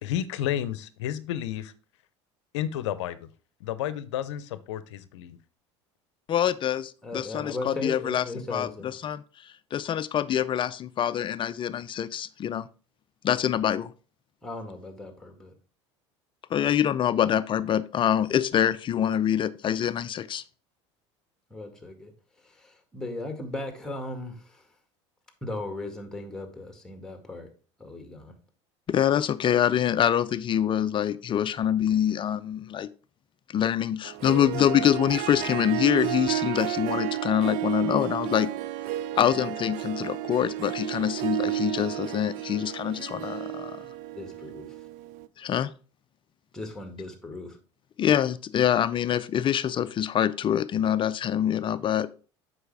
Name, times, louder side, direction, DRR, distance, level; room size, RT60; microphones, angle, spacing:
voice 1, 0.0-1.7 2.5-3.3 3.6-5.4, left 11 dB, 75° left, 15 dB, 0.7 m, -31 dB
voice 2, 6.3-8.2 8.5-8.7 9.0-12.7 13.2-13.9 16.5-20.4 28.9-32.9 33.5-38.5 39.2-43.8 45.4-45.7 48.0-52.2, left 10 dB, 35° left, 15 dB, 0.5 m, -25 dB
voice 3, 7.0-8.9 14.4-15.5 21.5-22.1 22.4-24.7 25.4-27.5 27.8-28.3 34.2-34.8 35.3-35.5 44.1-44.9 46.5-47.6, left 2 dB, 5° left, 5 dB, 1.9 m, -37 dB
Harp, 34.0-45.3, right 14 dB, 55° right, 0.4 m, -32 dB
7.8 x 5.5 x 3.4 m, 0.37 s
hypercardioid pair, 80°, 15 cm